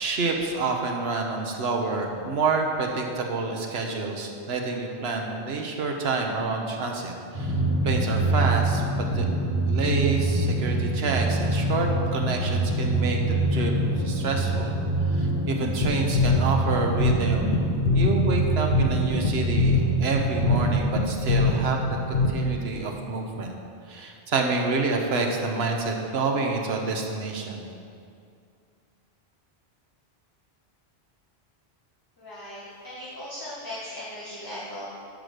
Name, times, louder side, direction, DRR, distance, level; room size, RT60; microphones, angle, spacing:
voice 1, 0.0-7.6 7.8-8.8 9.1-9.3 9.6-13.2 13.5-13.7 14.0-14.7 15.1-17.7 17.9-21.8 22.1-23.5 23.9-27.6, right 3 dB, 75° right, 2 dB, 1.2 m, -28 dB
Drum, 7.3-20.8, right 2 dB, 30° right, 2.5 m, -26 dB
sound 1, 15.8-22.7, left 2 dB, 70° left, 1.1 m, -24 dB
voice 2, 32.2-34.9, left 1 dB, 20° left, -9 dB, 1.5 m, -38 dB
10.0 x 5.0 x 6.6 m, 2.4 s
omnidirectional pair, 1.1 m